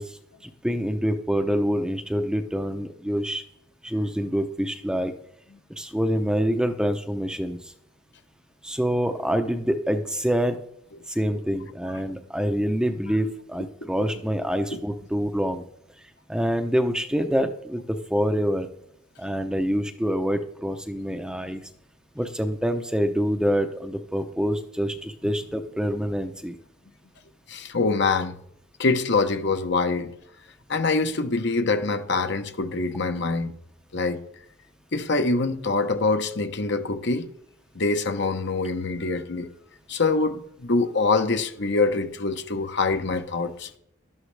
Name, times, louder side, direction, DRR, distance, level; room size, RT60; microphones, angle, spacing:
voice 1, 0.0-3.4 3.8-5.1 5.8-7.6 8.6-10.6 11.1-15.6 16.3-18.7 19.2-21.6 22.2-26.6 31.8-31.9, equal, 5° right, 0.7 m, -26 dB
voice 2, 27.5-28.4 28.8-30.1 30.7-33.5 33.9-34.2 34.9-37.3 37.7-39.5 39.9-43.7, left 3 dB, 60° left, 0.9 m, -24 dB
12.0 x 11.0 x 3.3 m
head